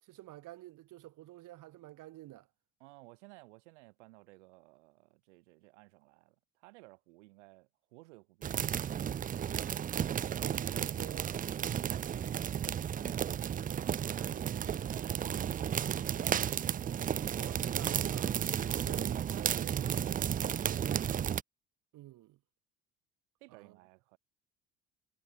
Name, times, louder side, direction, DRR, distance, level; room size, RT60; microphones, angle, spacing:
voice 1, 0.0-2.5 9.5-9.8 10.4-11.3 11.8-12.0 17.3-19.8 21.9-22.4 23.5-23.8, right 16 dB, 60° right, 5.1 m, -50 dB
voice 2, 2.8-8.9 10.2-11.1 11.5-13.3 13.9-16.5 18.7-21.2 23.4-24.2, right 23 dB, 80° right, 7.8 m, -56 dB
sound 1, 8.4-21.4, right 9 dB, 25° right, 0.4 m, -33 dB
hypercardioid pair, 75°, 35 cm